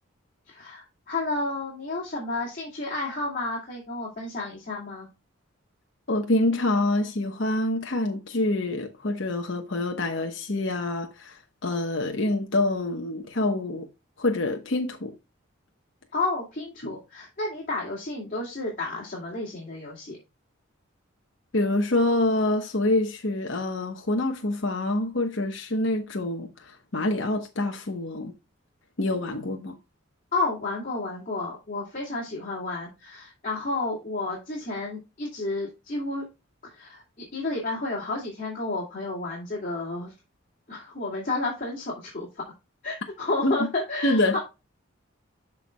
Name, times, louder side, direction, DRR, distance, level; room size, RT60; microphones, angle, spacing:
voice 1, 0.5-5.1 16.1-20.2 30.3-36.2 36.7-37.0 37.3-40.1 40.7-42.3 42.8-44.4, left 2 dB, 40° left, 2.5 m, -31 dB
voice 2, 6.1-13.9 14.2-15.1 16.8-16.9 21.5-28.3 29.0-29.7 43.4-43.5 44.0-44.4, left 2 dB, 60° left, 1.0 m, -26 dB
12.5 x 4.6 x 2.2 m
head